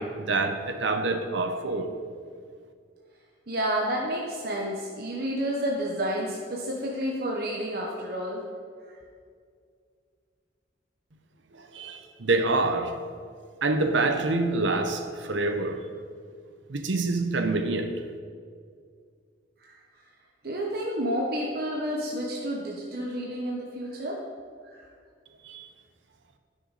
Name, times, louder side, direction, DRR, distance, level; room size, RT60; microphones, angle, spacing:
voice 1, 0.0-1.9 11.5-13.0 13.6-15.9 16.7-17.9 25.4-25.6, right 3 dB, 80° right, 0.9 m, -26 dB
voice 2, 3.5-8.4 19.6-19.8 20.4-24.1 24.6-24.9, equal, 55° right, 1.1 m, -30 dB
13.5 x 6.4 x 4.2 m
head